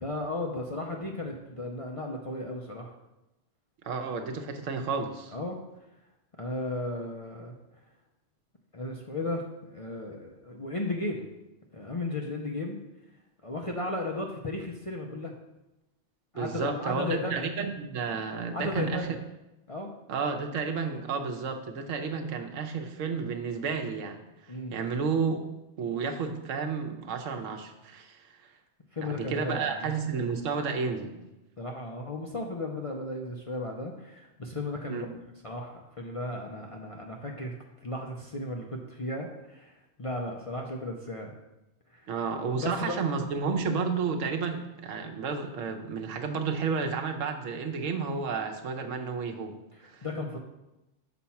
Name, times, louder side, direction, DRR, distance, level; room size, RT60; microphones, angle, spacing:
voice 1, 0.0-2.9 5.3-5.6 6.4-7.5 8.7-9.5 9.7-11.3 11.7-12.8 13.4-15.3 16.3-17.4 18.5-19.1 19.7-19.9 24.5-24.8 28.9-29.9 31.6-35.1 35.4-37.5 37.8-39.7 40.0-41.3 41.9-42.1 42.6-43.0 49.8-50.4, left 2 dB, 40° left, 0 dB, 0.5 m, -35 dB
voice 2, 3.8-5.3 16.3-19.2 20.1-25.4 25.8-28.3 29.0-31.2 34.9-35.1 42.1-49.5 49.8-50.1, right 5 dB, 85° right, 5 dB, 1.1 m, -31 dB
6.2 x 4.2 x 5.8 m, 0.96 s
omnidirectional pair, 1.3 m